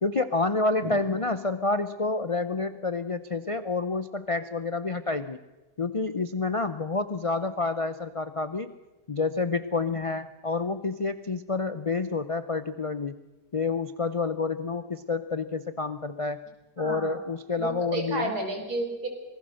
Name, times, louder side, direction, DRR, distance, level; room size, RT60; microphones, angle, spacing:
voice 1, 0.0-5.4 5.8-8.7 9.1-13.1 13.5-16.4 16.8-18.3, left 3 dB, 55° left, 11 dB, 0.3 m, -28 dB
voice 2, 16.8-17.2 17.6-19.1, right 2 dB, 70° right, 4 dB, 4.5 m, -31 dB
26.0 x 19.0 x 6.4 m, 1.1 s
omnidirectional pair, 1.7 m